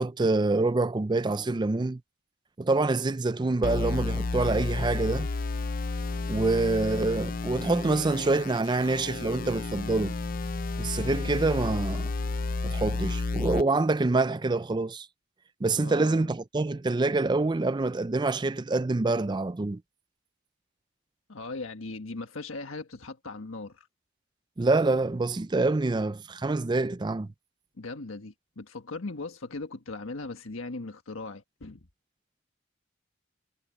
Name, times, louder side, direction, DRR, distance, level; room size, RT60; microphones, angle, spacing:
voice 1, 0.0-2.0 2.6-5.3 6.3-10.1 10.8-12.1 12.6-15.1 15.6-19.8 24.6-27.3, right 3 dB, 20° right, 0.4 m, -26 dB
sound 1, 3.6-13.6, left 3 dB, 45° left, 0.5 m, -31 dB
voice 2, 15.8-16.3 21.3-23.9 27.8-31.9, left 3 dB, 85° left, 1.5 m, -39 dB
head